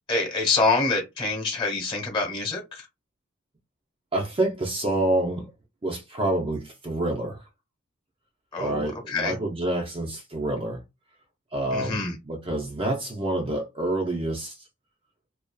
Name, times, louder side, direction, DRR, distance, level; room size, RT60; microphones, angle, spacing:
voice 1, 0.1-2.9 8.5-9.4 11.7-12.2, left 3 dB, 25° left, 1.0 m, -26 dB
voice 2, 4.1-5.5 5.8-7.4 8.6-10.8 11.5-14.6, right 1 dB, 25° right, 0.5 m, -27 dB
2.6 x 2.3 x 2.2 m
head